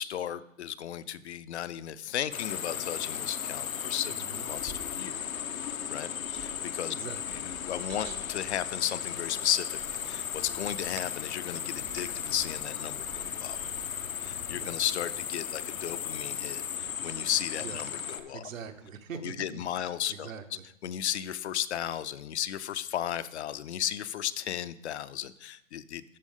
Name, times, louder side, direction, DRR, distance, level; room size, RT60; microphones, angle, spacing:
voice 1, 0.0-4.1 4.5-5.2 5.9-6.9 7.3-9.8 10.1-13.6 14.2-18.5 19.2-20.3 20.8-26.0, left 11 dB, 55° left, 14 dB, 0.5 m, -34 dB
sound 1, 2.3-18.2, left 8 dB, 85° left, 0.7 m, -36 dB
Wind, 2.9-18.9, right 6 dB, 20° right, 0.5 m, -53 dB
voice 2, 4.1-4.5 6.9-7.2 7.9-8.2 14.6-14.8 17.6-17.8 18.3-20.6, right 7 dB, 75° right, 8 dB, 1.0 m, -43 dB
13.0 x 4.4 x 3.6 m, 0.82 s
hypercardioid pair, 130°, 40 cm